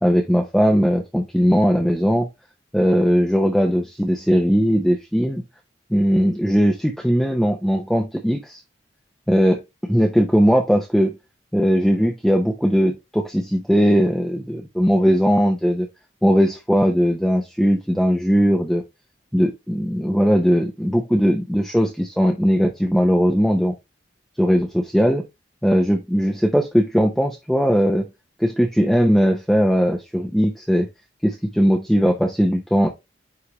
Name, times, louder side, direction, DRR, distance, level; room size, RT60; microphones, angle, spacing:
voice 1, 0.0-2.3 2.7-5.4 5.9-8.6 9.3-11.2 11.5-15.9 16.2-18.8 19.3-23.7 24.4-25.2 25.6-28.1 28.4-30.9 31.2-32.9, equal, ahead, 0.7 m, -19 dB
9.7 x 3.4 x 3.0 m
head